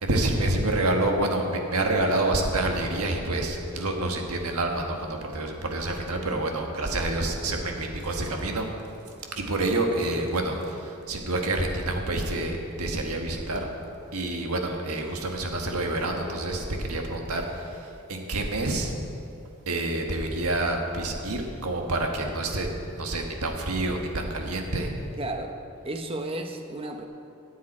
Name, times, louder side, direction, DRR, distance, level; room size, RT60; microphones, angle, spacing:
voice 1, 0.0-8.7 9.3-13.7 14.1-18.9 19.7-25.0, right 2 dB, 90° right, 2 dB, 1.4 m, -28 dB
voice 2, 25.2-25.6 25.8-27.1, right 2 dB, 25° right, 5 dB, 0.8 m, -33 dB
19.0 x 7.4 x 4.3 m, 2.7 s
head